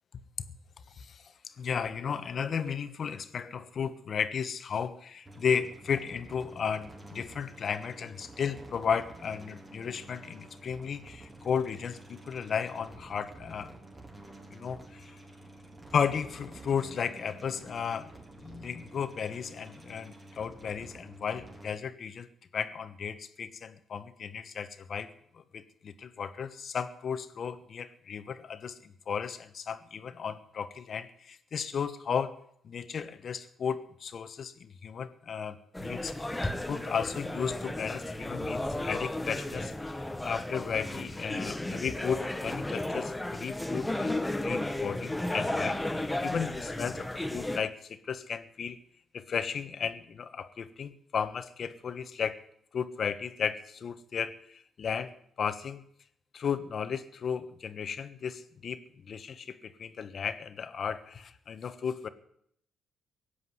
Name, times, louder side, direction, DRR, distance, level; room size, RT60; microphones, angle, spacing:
voice 1, 0.9-13.7 14.5-15.2 15.9-18.1 18.4-22.3 22.5-32.3 32.6-48.8 49.1-52.4 52.7-55.8 56.3-58.8 59.1-62.1, left 7 dB, 50° left, 11 dB, 1.3 m, -34 dB
sound 1, 5.3-21.7, right 2 dB, 25° right, 4.0 m, -50 dB
sound 2, 35.7-47.6, left 1 dB, 10° left, 1.2 m, -34 dB
16.5 x 8.4 x 9.7 m, 0.69 s
cardioid pair, 90°, 0 cm